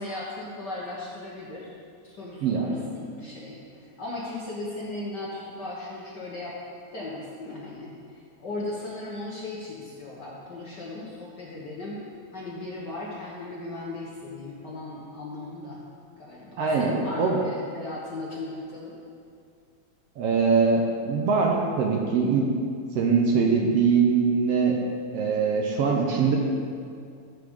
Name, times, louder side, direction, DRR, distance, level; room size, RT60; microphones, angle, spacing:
voice 1, 0.0-1.7 2.0-6.6 6.9-12.0 12.3-15.8 16.2-19.0, left 2 dB, 50° left, -5 dB, 1.4 m, -37 dB
voice 2, 16.6-17.4 20.2-22.5 23.0-24.8 25.1-26.4, right 5 dB, 70° right, 0 dB, 1.8 m, -22 dB
13.5 x 7.8 x 3.7 m, 2.3 s
omnidirectional pair, 3.3 m